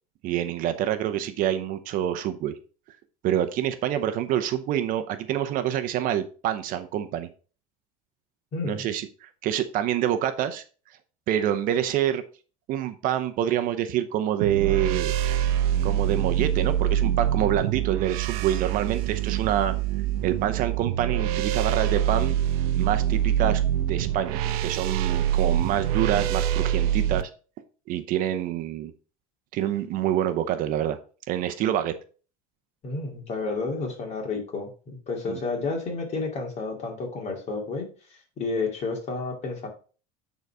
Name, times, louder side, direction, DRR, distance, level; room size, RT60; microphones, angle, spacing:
voice 1, 0.2-2.5 3.2-7.3 8.6-10.6 11.3-12.2 12.7-15.1 15.8-19.7 20.2-22.4 22.7-27.3 27.9-28.9 29.5-31.0 31.3-31.9 35.3-35.4, right 11 dB, 45° right, 10 dB, 0.7 m, -26 dB
voice 2, 8.5-8.8 32.8-39.7, left 3 dB, 35° left, 2 dB, 2.4 m, -31 dB
sound 1, 14.4-27.2, right 11 dB, 80° right, 0.8 m, -25 dB
8.9 x 4.1 x 4.8 m, 0.38 s
cardioid pair, 145°, 19 cm